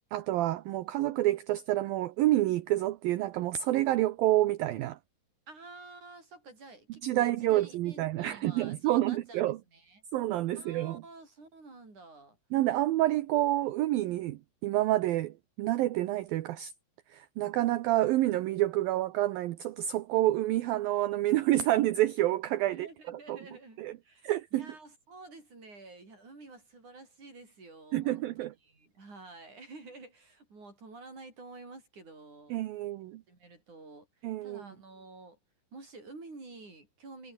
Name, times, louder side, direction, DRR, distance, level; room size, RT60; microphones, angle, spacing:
voice 1, 0.1-5.0 7.0-9.6 10.1-11.0 12.5-16.7 17.1-23.4 23.8-23.9 24.2-24.7 27.9-28.5 32.5-33.2 34.2-34.6, right 15 dB, 70° right, 2.5 m, -28 dB
voice 2, 5.5-9.4 9.7-10.0 10.6-12.4 22.7-32.6 33.3-35.4 35.7-37.3, right 3 dB, 45° right, 9.3 m, -50 dB
omnidirectional pair, 4.7 m